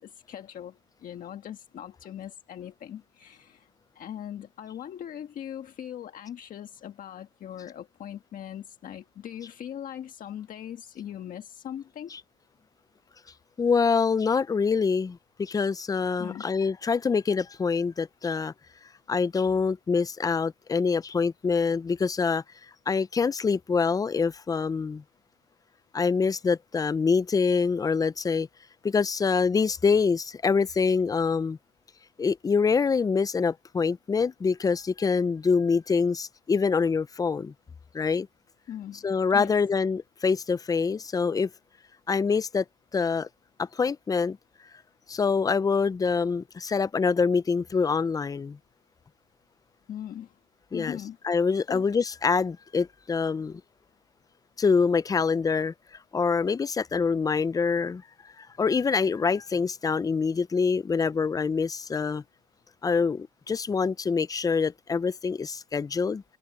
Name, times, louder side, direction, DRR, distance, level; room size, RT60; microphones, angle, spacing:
voice 1, 0.0-3.7 3.9-12.2 16.2-16.5 38.7-39.5 49.9-50.4 50.7-51.2 51.7-51.8, left 10 dB, 55° left, 1.5 m, -40 dB
voice 2, 13.6-18.5 19.1-22.4 22.9-25.0 25.9-28.5 28.8-31.6 32.2-37.5 37.9-38.3 39.0-41.5 42.1-42.6 42.9-43.3 43.6-44.4 45.1-48.6 50.7-51.0 51.2-53.6 54.6-58.0 58.4-62.2 62.8-66.2, left 5 dB, 20° left, 0.5 m, -25 dB
cardioid pair, 110°, 17 cm